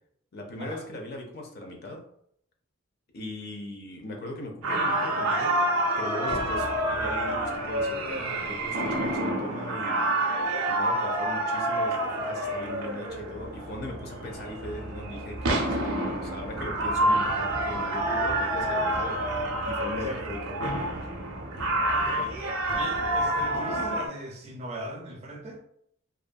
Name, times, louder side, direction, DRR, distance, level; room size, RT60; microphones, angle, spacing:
voice 1, 0.3-2.1 3.1-5.6 6.0-10.1 10.7-19.2 19.7-21.1, left 1 dB, 45° left, 0.5 m, -39 dB
sound 1, 4.6-24.1, right 1 dB, 80° right, 0.5 m, -28 dB
voice 2, 21.9-22.4 22.7-25.6, right 1 dB, 30° right, 0.4 m, -39 dB
2.5 x 2.5 x 2.2 m
head